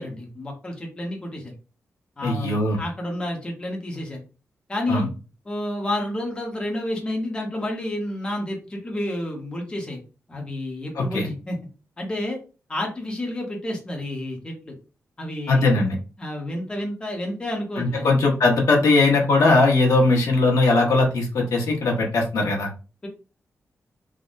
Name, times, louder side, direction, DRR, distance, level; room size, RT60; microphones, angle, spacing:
voice 1, 0.0-1.5 2.2-4.2 4.7-5.1 5.4-10.0 10.3-11.6 12.0-12.4 12.7-14.7 15.2-15.9 16.2-18.1 23.0-23.1, left 1 dB, 20° left, 0 dB, 0.7 m, -30 dB
voice 2, 2.2-2.8 4.9-5.0 11.0-11.3 15.5-16.0 17.8-22.7, left 2 dB, 85° left, 0 dB, 0.9 m, -19 dB
3.4 x 2.0 x 2.5 m, 0.33 s
wide cardioid pair, 180°, 5 cm